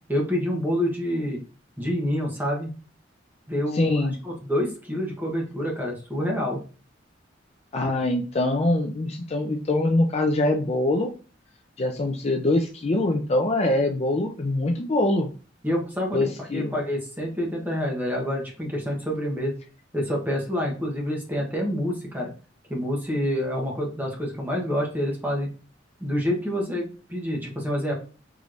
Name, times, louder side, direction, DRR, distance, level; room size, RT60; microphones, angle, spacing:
voice 1, 0.1-1.4 1.8-2.7 3.5-6.6 15.6-19.5 19.9-22.3 22.7-25.5 26.0-27.9, equal, 10° right, -1 dB, 1.0 m, -27 dB
voice 2, 3.7-4.1 7.7-11.1 11.8-15.3 16.1-16.7, left 2 dB, 35° left, 3 dB, 0.4 m, -23 dB
4.8 x 3.1 x 2.5 m, 0.36 s
head